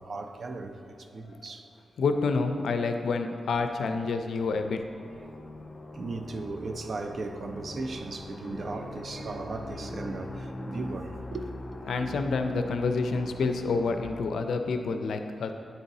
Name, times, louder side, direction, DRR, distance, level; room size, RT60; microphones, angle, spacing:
voice 1, 0.0-1.7 3.5-3.6 3.9-4.0 5.1-5.4 5.9-11.5 11.7-12.2, right 3 dB, 60° right, 0.4 m, -37 dB
voice 2, 2.0-4.8 11.9-15.5, left 4 dB, 90° left, 0.4 m, -28 dB
sound 1, 4.4-14.1, left 1 dB, 30° left, 0.5 m, -41 dB
9.3 x 3.9 x 2.7 m
cardioid pair, 90°, 0 cm